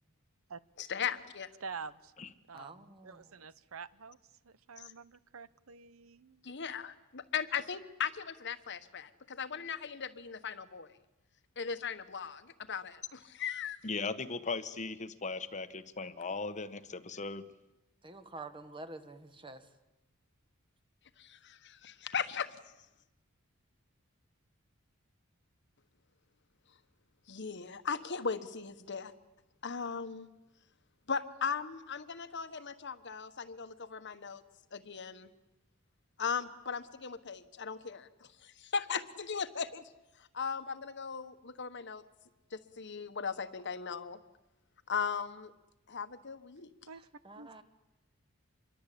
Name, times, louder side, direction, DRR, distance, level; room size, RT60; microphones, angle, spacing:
voice 1, 0.8-1.5 4.8-4.9 6.4-10.9 11.6-13.8 21.2-22.6 27.3-29.1 29.6-30.3 31.1-34.4 34.7-35.3 36.2-39.8 40.3-42.0 42.5-44.2 44.9-45.5 45.9-46.7, left 6 dB, 55° left, 10 dB, 1.4 m, -38 dB
voice 2, 1.6-2.1 2.5-4.2 4.4-6.4 46.8-47.1 47.4-47.5, right 5 dB, 75° right, 16 dB, 0.8 m, -47 dB
voice 3, 2.5-3.3 18.0-19.7 47.2-47.6, right 2 dB, 25° right, 8 dB, 1.7 m, -48 dB
voice 4, 13.8-17.4, left 4 dB, 35° left, 11 dB, 1.1 m, -38 dB
26.0 x 22.5 x 8.5 m, 0.96 s
head